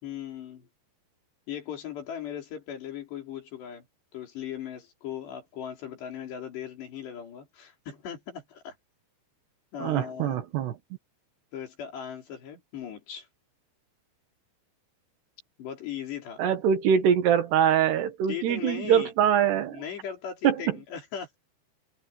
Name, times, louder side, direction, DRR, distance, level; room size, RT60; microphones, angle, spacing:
voice 1, 0.0-0.7 1.5-3.9 4.1-8.7 9.7-10.4 11.5-13.3 15.6-16.4 18.3-19.1 19.7-21.4, left 9 dB, 70° left, 6.1 m, -38 dB
voice 2, 9.8-10.7 16.4-19.8 20.4-20.8, right 9 dB, 70° right, 3.7 m, -23 dB
omnidirectional pair, 5.1 m